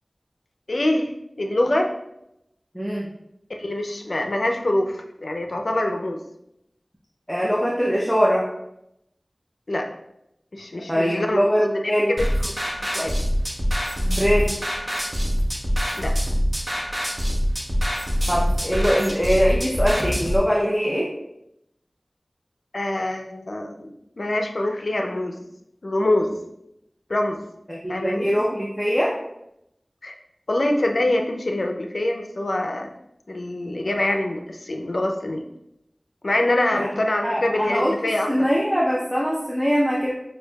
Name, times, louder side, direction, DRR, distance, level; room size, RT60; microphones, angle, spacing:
voice 1, 0.7-1.1 1.4-1.9 3.5-6.2 9.7-9.9 10.5-12.3 12.8-13.2 16.0-16.2 22.7-25.4 25.8-26.4 27.1-27.4 27.9-28.3 30.0-30.1 30.5-32.9 33.3-35.5 36.2-38.5, left 1 dB, 70° left, 3 dB, 0.5 m, -25 dB
voice 2, 2.7-3.1 7.3-8.4 10.9-12.2 14.0-14.6 18.3-21.1 27.7-29.1 36.7-36.9 37.2-40.1, equal, ahead, -4 dB, 0.6 m, -22 dB
sound 1, 12.2-20.4, equal, 25° right, 0.8 m, -24 dB
6.1 x 2.6 x 2.3 m, 0.81 s
wide cardioid pair, 55°, 0 cm